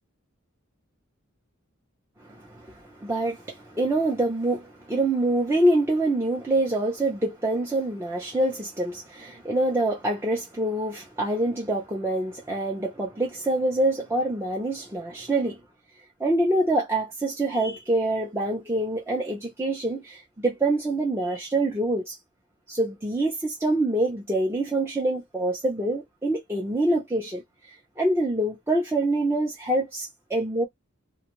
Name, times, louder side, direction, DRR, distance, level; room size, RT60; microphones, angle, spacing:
voice 1, 2.2-15.6 16.2-22.2 22.7-27.4 28.0-30.7, right 1 dB, 10° right, 0.6 m, -25 dB
2.6 x 2.3 x 2.9 m
head